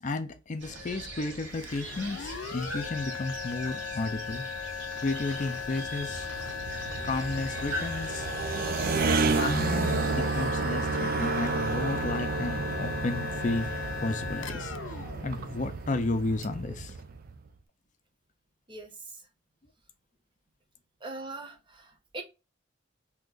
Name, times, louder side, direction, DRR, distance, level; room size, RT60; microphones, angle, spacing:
voice 1, 0.0-4.5 5.0-6.3 7.0-8.3 9.3-13.7 14.0-15.0 15.2-16.9, left 2 dB, 40° left, 0.5 m, -33 dB
sound 1, 0.6-10.5, right 1 dB, 65° right, 1.4 m, -42 dB
sound 2, 1.6-16.2, left 6 dB, 85° left, 0.5 m, -38 dB
sound 3, 5.8-17.4, right 4 dB, 50° right, 0.4 m, -31 dB
voice 2, 18.7-19.2 21.0-22.2, right 3 dB, 25° right, 0.8 m, -41 dB
2.8 x 2.5 x 3.7 m
head